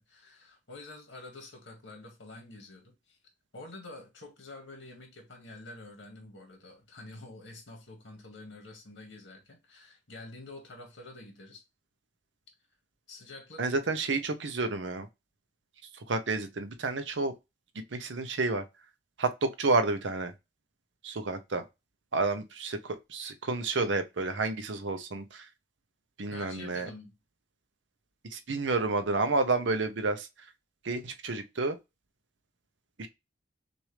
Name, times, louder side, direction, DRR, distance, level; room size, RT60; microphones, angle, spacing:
voice 1, 0.0-3.2 3.5-11.6 13.1-13.8 26.3-27.1, left 2 dB, 70° left, 1.9 m, -48 dB
voice 2, 13.6-15.1 16.1-17.3 17.9-18.6 19.2-20.3 21.0-21.6 22.1-25.4 26.2-26.9 28.3-30.3 30.8-31.8 33.0-33.1, right 3 dB, 75° right, 0.7 m, -30 dB
6.2 x 2.6 x 3.2 m
head